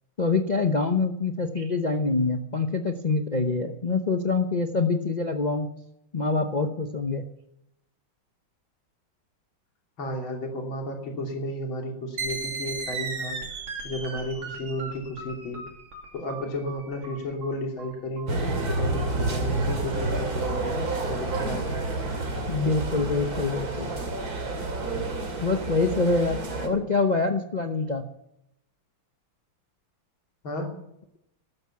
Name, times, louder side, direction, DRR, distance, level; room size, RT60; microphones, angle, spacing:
voice 1, 0.2-5.7 6.1-7.2 22.5-23.9 25.4-28.0, left 3 dB, 45° left, 5 dB, 0.5 m, -25 dB
voice 2, 10.0-15.6 16.1-21.8 26.7-26.9 30.4-30.7, left 1 dB, 75° left, 2 dB, 3.7 m, -33 dB
sound 1, 12.2-19.4, right 4 dB, 85° right, 3.6 m, -36 dB
sound 2, 18.3-26.7, right 2 dB, 50° right, 3.0 m, -29 dB
13.5 x 12.0 x 7.2 m, 0.81 s
omnidirectional pair, 2.2 m